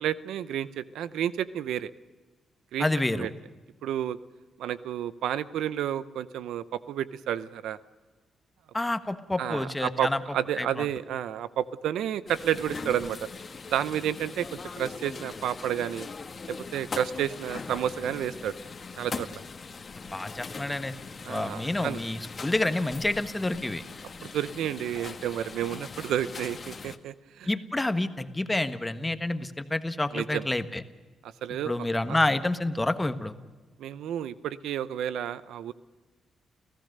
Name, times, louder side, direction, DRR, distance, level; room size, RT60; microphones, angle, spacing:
voice 1, 0.0-1.9 2.7-2.9 3.1-3.3 3.8-4.2 4.6-7.8 9.4-13.3 13.7-16.1 16.5-18.5 19.0-19.3 21.2-22.0 24.2-27.5 30.1-30.5 31.2-31.9 33.8-35.7, right 10 dB, 85° right, 16 dB, 0.7 m, -31 dB
voice 2, 2.8-3.3 8.7-10.2 10.6-10.8 20.1-20.9 21.3-23.8 27.5-30.8 31.6-33.3, left 2 dB, 15° left, 10 dB, 1.5 m, -28 dB
sound 1, 12.3-27.0, left 4 dB, 40° left, 1.5 m, -41 dB
30.0 x 15.5 x 6.7 m, 1.3 s
cardioid pair, 75°, 0 cm